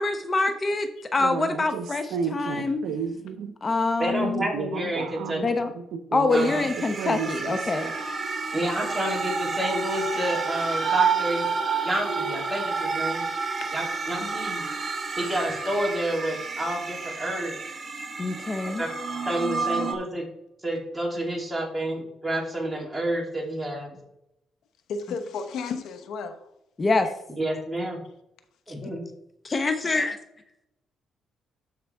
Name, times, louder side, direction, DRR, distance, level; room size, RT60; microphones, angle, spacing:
voice 1, 0.0-2.8 3.6-4.4 5.4-5.7 6.1-7.9 14.2-14.3 18.2-18.8 26.8-27.1 29.4-30.1, left 3 dB, 30° left, 8 dB, 0.9 m, -25 dB
voice 2, 1.2-3.5 4.2-7.6, right 6 dB, 80° right, 9 dB, 0.8 m, -32 dB
voice 3, 4.0-5.4 6.3-6.6 8.5-11.5 11.8-13.2 13.7-14.6 15.2-17.6 18.7-18.9 19.3-20.3 20.6-24.0 27.4-28.0 28.7-29.1, right 1 dB, 10° right, -1 dB, 2.9 m, -29 dB
sound 1, 6.3-19.9, right 5 dB, 35° right, 1.4 m, -30 dB
voice 4, 13.3-13.7 24.9-26.5, left 5 dB, 80° left, 9 dB, 0.9 m, -34 dB
13.0 x 5.0 x 3.5 m, 0.82 s
cardioid pair, 90°, 0 cm